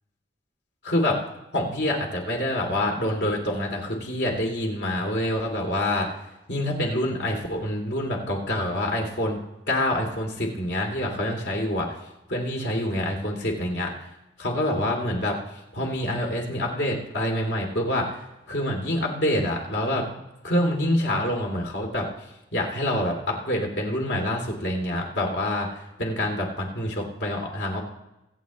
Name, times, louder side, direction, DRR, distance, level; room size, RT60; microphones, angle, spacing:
voice 1, 0.8-1.1 1.5-6.1 6.5-9.4 9.7-12.0 12.3-13.9 14.4-15.4 15.7-18.2 18.5-20.1 20.4-22.1 22.5-27.8, left 1 dB, 80° left, 0 dB, 2.7 m, -26 dB
24.0 x 8.5 x 3.1 m, 0.92 s
head